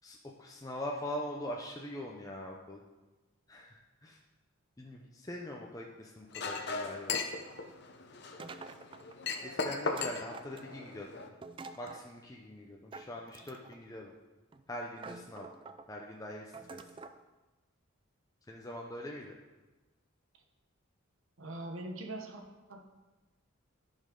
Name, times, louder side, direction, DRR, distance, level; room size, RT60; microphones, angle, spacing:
voice 1, 0.0-2.8 3.5-4.2 4.8-7.2 9.4-11.3 11.8-14.1 14.7-15.5 15.9-16.8 18.5-19.3, left 1 dB, 15° left, -1 dB, 0.6 m, -42 dB
Chink clink, 6.3-11.3, left 4 dB, 50° left, 0.8 m, -38 dB
sound 1, 8.4-9.2 10.0-10.9 11.4-12.1 12.9-13.8 14.5-14.6 15.0-15.9 16.5-17.2, right 4 dB, 25° right, 0.3 m, -47 dB
voice 2, 21.4-22.8, right 1 dB, 70° right, 4 dB, 1.1 m, -42 dB
14.5 x 5.3 x 3.8 m, 1.2 s
head